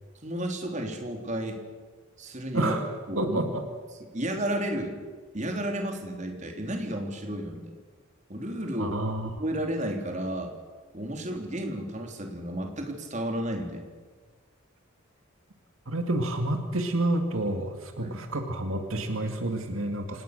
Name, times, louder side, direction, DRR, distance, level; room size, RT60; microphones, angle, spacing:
voice 1, 0.2-1.6 2.2-2.8 3.1-3.6 4.1-5.0 5.3-7.8 8.3-9.0 9.4-10.5 10.9-13.9 18.0-18.2, right 1 dB, 35° right, 3 dB, 3.6 m, -32 dB
voice 2, 3.2-3.6 8.8-9.4 15.9-20.2, right 1 dB, 75° right, 5 dB, 2.3 m, -29 dB
27.5 x 19.0 x 6.8 m, 1.5 s
head